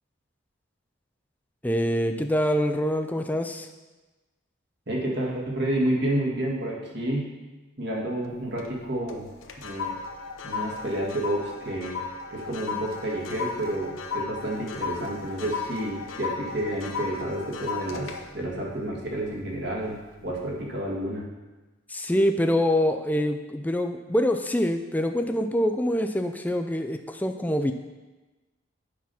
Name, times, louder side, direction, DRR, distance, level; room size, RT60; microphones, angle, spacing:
voice 1, 1.6-3.7 21.9-27.7, equal, 10° left, 6 dB, 0.4 m, -25 dB
voice 2, 4.9-7.3 7.8-9.3 9.6-10.0 10.4-12.0 12.3-20.0 20.2-21.2, right 1 dB, 55° right, -2 dB, 1.9 m, -30 dB
sound 1, 8.2-8.8 9.1-19.6 20.1-20.4, left 4 dB, 75° left, 0.8 m, -35 dB
8.7 x 5.9 x 5.5 m, 1.2 s
head